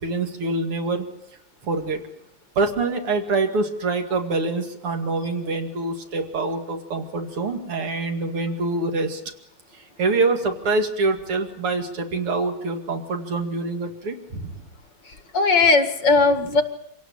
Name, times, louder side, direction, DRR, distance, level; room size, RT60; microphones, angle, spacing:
voice 1, 0.0-1.1 1.6-2.0 2.6-9.2 9.7-14.6, right 3 dB, 85° right, 5 dB, 3.4 m, -25 dB
voice 2, 15.1-16.6, left 4 dB, 55° left, 10 dB, 2.4 m, -18 dB
25.5 x 17.5 x 8.7 m, 0.75 s
omnidirectional pair, 2.4 m